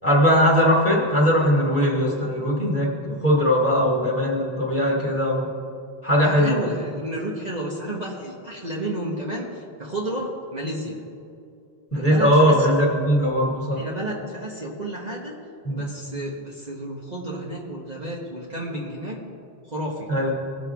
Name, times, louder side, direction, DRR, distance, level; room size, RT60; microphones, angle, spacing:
voice 1, 0.0-5.5 6.0-6.6 11.9-13.8 15.6-15.9 20.1-20.3, equal, 10° left, -5 dB, 2.4 m, -20 dB
voice 2, 6.1-11.0 11.9-12.7 13.7-15.3 15.7-19.2 19.7-20.1, right 1 dB, 40° right, -3 dB, 1.3 m, -31 dB
19.0 x 6.7 x 3.5 m, 2.5 s
omnidirectional pair, 1.1 m